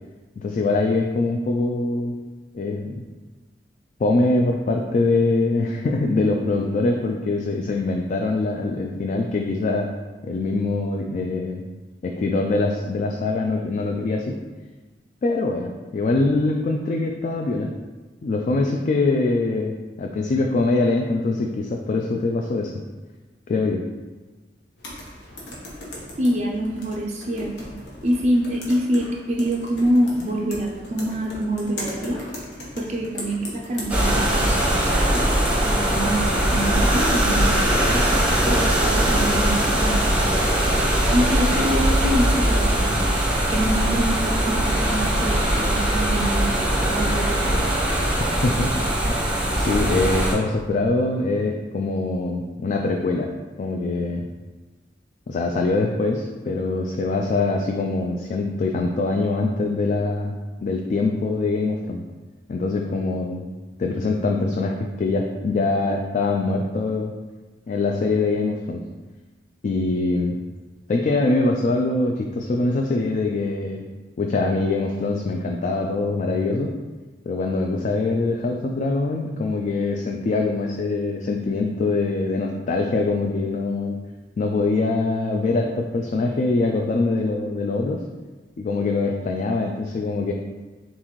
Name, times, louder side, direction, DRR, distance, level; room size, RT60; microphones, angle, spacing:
voice 1, 0.4-2.1 2.5-2.9 4.0-9.9 10.2-11.6 12.0-14.3 15.2-17.7 18.2-19.7 20.0-22.7 23.5-23.8 48.2-48.7 49.0-53.3 53.6-54.3 55.3-60.4 60.6-62.0 62.5-63.5 63.8-67.1 67.7-68.8 69.6-70.4 70.9-73.8 74.2-76.7 77.3-84.0 84.4-88.0 88.6-90.3, left 3 dB, 45° left, 1 dB, 0.3 m, -23 dB
sound 1, 24.8-38.5, left 1 dB, 80° left, 1.0 m, -38 dB
voice 2, 26.2-27.7 28.0-32.2 32.8-35.3 35.6-38.2 38.4-40.0 41.1-43.0 43.3-47.8, equal, 40° right, -1 dB, 0.4 m, -25 dB
sound 2, 33.9-50.3, right 1 dB, 5° right, 0.7 m, -21 dB
4.0 x 3.5 x 3.0 m, 1.2 s
head